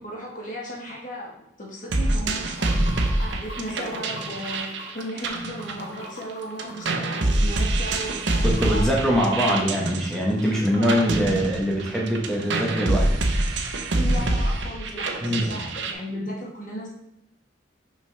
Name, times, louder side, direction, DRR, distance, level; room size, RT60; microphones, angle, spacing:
voice 1, 0.0-9.6 10.6-11.3 14.0-16.9, equal, 45° left, -2 dB, 1.5 m, -36 dB
sound 1, 1.9-6.3 6.6-15.9, right 2 dB, 85° right, 0.9 m, -25 dB
Water / Sink (filling or washing), 2.3-8.8, left 1 dB, 75° left, 1.6 m, -42 dB
voice 2, 8.6-13.1 15.2-15.6, equal, 5° left, -3 dB, 1.0 m, -23 dB
6.0 x 5.6 x 3.3 m, 0.80 s
head